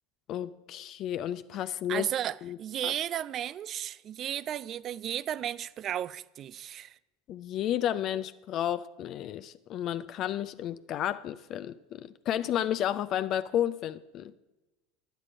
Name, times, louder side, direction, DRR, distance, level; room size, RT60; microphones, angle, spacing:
voice 1, 0.3-2.1 2.4-2.6 2.8-2.9 7.3-14.3, left 11 dB, 50° left, 0.4 m, -32 dB
voice 2, 1.9-6.9, right 10 dB, 40° right, 0.3 m, -34 dB
11.0 x 9.0 x 4.9 m
hypercardioid pair, 80°, 0 cm